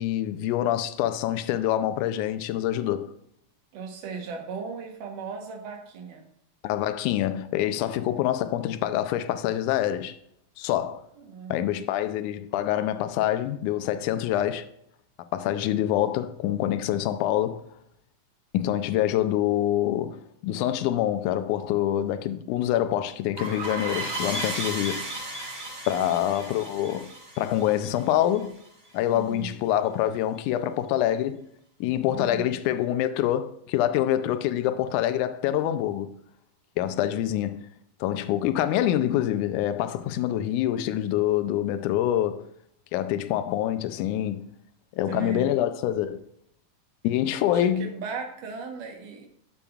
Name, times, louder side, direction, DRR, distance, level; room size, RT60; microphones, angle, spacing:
voice 1, 0.0-3.1 6.6-10.1 10.6-11.0 11.5-14.7 15.3-17.6 18.5-20.2 20.4-25.0 25.9-27.1 27.4-28.6 28.9-31.4 31.8-36.1 36.8-37.6 38.0-42.4 42.9-44.4 45.0-46.2 47.0-47.9, left 12 dB, 80° left, 1.9 m, -26 dB
voice 2, 3.7-6.2 11.2-11.9 25.9-26.1 29.1-29.5 32.1-32.6 45.1-45.6 47.4-49.3, right 5 dB, 70° right, 2.7 m, -37 dB
sound 1, 23.4-28.7, right 1 dB, 30° right, 3.4 m, -35 dB
12.0 x 7.1 x 2.4 m
omnidirectional pair, 4.0 m